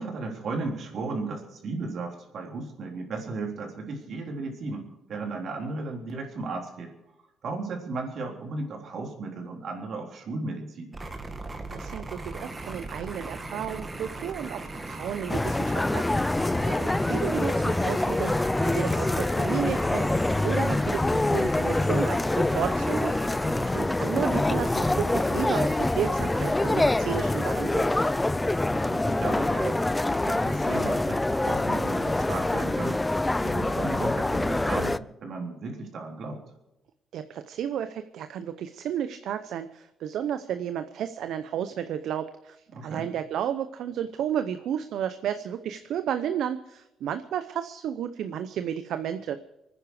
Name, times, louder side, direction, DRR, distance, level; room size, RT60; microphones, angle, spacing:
voice 1, 0.0-6.9 7.4-11.0 23.5-24.0 28.7-29.8 30.1-33.0 33.4-36.4 42.7-43.1, right 3 dB, 60° right, 1 dB, 3.7 m, -35 dB
sound 1, 10.9-27.4, right 2 dB, 25° right, 2.0 m, -39 dB
voice 2, 11.7-18.3 18.6-20.1 20.4-23.2 23.7-27.9 37.1-49.4, right 9 dB, 75° right, 10 dB, 0.7 m, -32 dB
sound 2, 15.3-35.0, left 2 dB, 15° left, 0.5 m, -25 dB
24.5 x 9.9 x 4.9 m, 0.92 s
cardioid pair, 90°, 0 cm